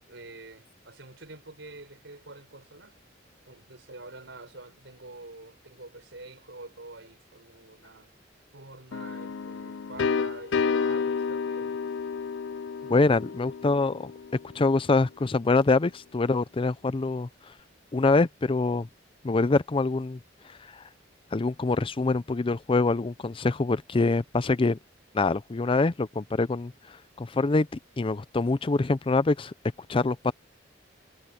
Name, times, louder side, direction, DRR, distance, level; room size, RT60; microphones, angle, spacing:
voice 1, 0.0-3.0 3.5-8.1 8.5-11.8 12.8-13.0, right 2 dB, 70° right, 5.6 m, -46 dB
sound 1, 8.9-14.6, left 5 dB, 75° left, 0.5 m, -30 dB
voice 2, 12.9-14.1 14.5-17.3 17.9-18.9 19.2-20.2 20.7-20.8 21.3-24.8 25.1-27.7 28.0-29.5 29.9-30.3, left 3 dB, 30° left, 0.5 m, -25 dB
head